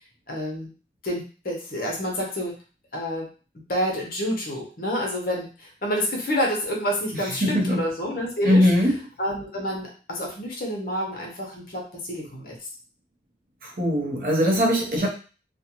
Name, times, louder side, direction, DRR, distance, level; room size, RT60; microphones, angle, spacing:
voice 1, 0.3-0.7 1.0-2.5 2.9-3.3 3.7-12.6, equal, 50° left, -1 dB, 0.8 m, -28 dB
voice 2, 7.4-7.8 8.4-8.9 13.6-15.1, equal, 50° right, 0 dB, 0.7 m, -21 dB
2.5 x 2.2 x 2.9 m, 0.36 s
head